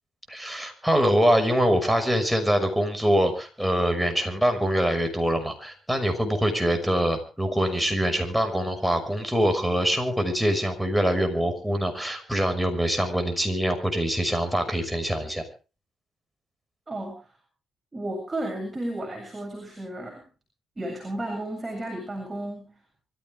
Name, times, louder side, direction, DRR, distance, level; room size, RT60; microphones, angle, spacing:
voice 1, 0.3-15.4, equal, 5° right, 5 dB, 6.0 m, -24 dB
voice 2, 16.9-17.3 17.9-20.3 20.8-22.7, right 1 dB, 20° right, 1 dB, 7.9 m, -33 dB
25.0 x 15.0 x 3.6 m, 0.36 s
cardioid pair, 90°, 0 cm